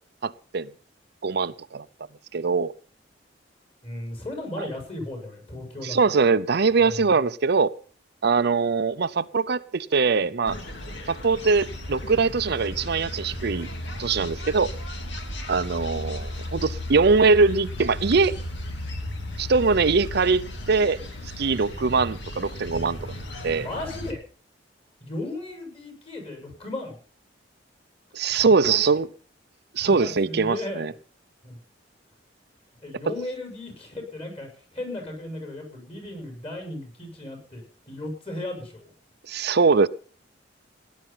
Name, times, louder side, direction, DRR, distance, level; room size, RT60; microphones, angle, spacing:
voice 1, 0.2-0.7 1.2-1.9 2.3-2.7 4.6-4.7 5.8-7.7 8.2-10.6 11.1-13.7 14.0-14.7 15.5-18.4 19.4-21.0 21.4-23.1 23.4-23.6 28.1-29.1 29.7-30.9 39.3-39.9, right 4 dB, 60° right, 0.6 m, -22 dB
voice 2, 3.8-6.0 6.8-7.1 23.5-24.2 25.0-27.0 28.3-28.9 29.8-30.8 31.4-31.6 32.8-38.9, left 1 dB, 35° left, 6.6 m, -36 dB
sound 1, 10.4-24.1, left 1 dB, 70° left, 3.0 m, -35 dB
17.5 x 10.5 x 5.7 m
head